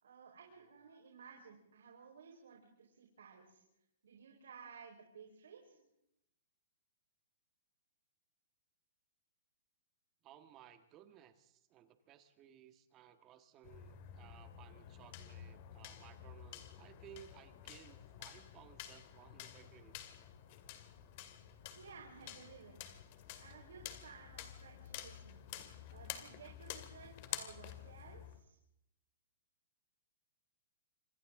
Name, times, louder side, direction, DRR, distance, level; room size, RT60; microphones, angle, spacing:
voice 1, 0.0-3.6 4.0-5.8 21.7-23.0 23.4-25.5 25.9-28.6, right 6 dB, 85° right, 1 dB, 4.6 m, -56 dB
voice 2, 10.2-20.1, right 11 dB, 25° right, 9 dB, 1.5 m, -60 dB
sound 1, 13.6-28.4, left 11 dB, 40° left, 2.3 m, -50 dB
27.0 x 26.5 x 3.8 m, 0.82 s
hypercardioid pair, 165°, 0 cm